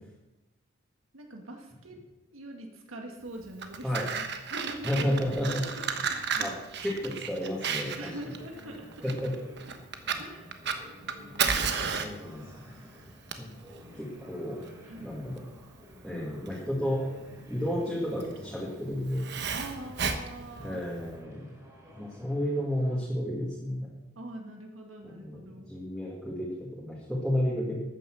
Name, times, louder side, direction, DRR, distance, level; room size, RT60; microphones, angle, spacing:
voice 1, 1.1-2.0 2.3-3.9 4.5-6.5 8.0-9.2 10.2-10.6 11.0-11.8 14.0-14.2 14.8-15.3 19.5-20.8 24.2-25.7, right 1 dB, 80° right, 3 dB, 1.7 m, -44 dB
Fire, 3.4-21.1, right 6 dB, 55° right, 1.1 m, -34 dB
voice 2, 4.8-5.6 6.3-6.5 6.8-8.1 9.0-9.5 12.0-12.8 13.4-13.6 13.9-14.6 15.0-15.4 16.0-17.0 17.5-19.3 20.6-21.5 21.9-23.9 25.0-27.8, equal, ahead, -6 dB, 2.3 m, -32 dB
sound 1, 7.5-23.0, left 1 dB, 15° right, 3.7 m, -52 dB
13.5 x 9.1 x 6.3 m, 1.0 s
head